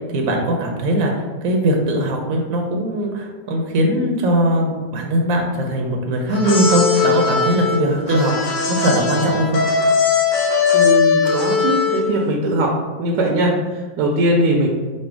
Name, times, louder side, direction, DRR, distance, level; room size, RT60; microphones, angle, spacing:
voice 1, 0.1-9.6, right 1 dB, 65° right, 1 dB, 1.0 m, -20 dB
sound 1, 6.3-12.2, left 5 dB, 50° left, 1.3 m, -19 dB
voice 2, 10.7-14.7, right 1 dB, 80° right, -1 dB, 1.2 m, -20 dB
4.3 x 2.4 x 4.6 m, 1.3 s
omnidirectional pair, 1.8 m